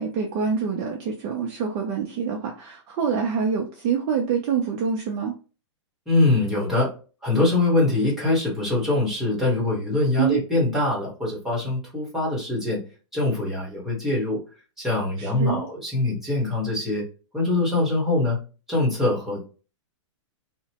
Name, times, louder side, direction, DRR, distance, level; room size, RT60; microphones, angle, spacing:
voice 1, 0.0-5.3 10.2-10.4 15.2-15.7, right 6 dB, 30° right, 0 dB, 0.5 m, -26 dB
voice 2, 6.1-6.9 7.2-12.8 13.1-14.4 14.8-17.0 17.3-18.4 18.7-19.4, left 2 dB, ahead, -4 dB, 1.1 m, -23 dB
2.8 x 2.1 x 2.8 m, 0.34 s
hypercardioid pair, 155°, 16 cm